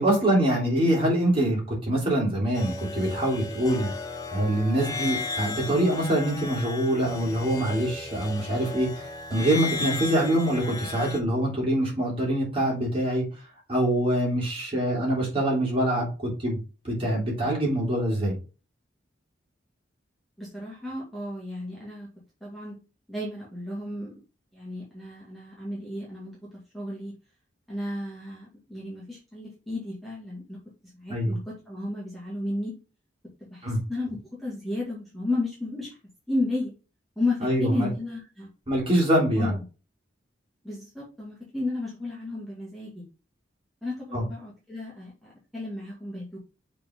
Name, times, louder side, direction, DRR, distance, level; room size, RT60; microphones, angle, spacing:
voice 1, 0.0-3.9 4.3-9.0 9.3-13.2 13.7-16.6 16.8-18.4 31.1-31.3 33.6-33.8 37.4-37.9 38.7-39.5 44.1-44.2, right 1 dB, 30° right, -2 dB, 3.3 m, -24 dB
sound 1, 2.5-11.2, left 3 dB, 20° left, 0.7 m, -35 dB
voice 2, 20.4-22.1 22.4-22.8 23.1-24.1 24.5-26.4 26.7-27.1 27.7-30.6 30.9-32.7 33.5-36.0 36.3-36.7 37.2-38.5 39.4-39.6 40.6-43.0 43.8-46.4, left 2 dB, ahead, -6 dB, 2.2 m, -33 dB
6.7 x 3.8 x 3.7 m, 0.32 s
head